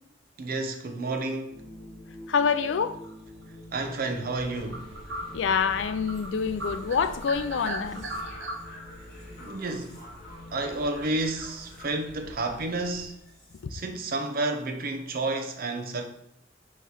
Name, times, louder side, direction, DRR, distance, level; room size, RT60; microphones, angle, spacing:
voice 1, 0.4-1.6 3.7-4.9 9.4-10.1 10.5-13.2 13.7-16.1, right 2 dB, 50° right, 0.7 m, -31 dB
sound 1, 1.5-13.8, left 1 dB, 5° left, 1.7 m, -48 dB
voice 2, 2.3-3.0 5.3-8.1 13.6-13.7, left 6 dB, 70° left, 0.4 m, -26 dB
sound 2, 3.0-3.4 3.9-4.0 4.3-6.3 6.6-8.6, right 1 dB, 70° right, 1.0 m, -36 dB
sound 3, 4.3-13.1, equal, 50° left, 1.9 m, -46 dB
5.7 x 3.1 x 5.6 m
head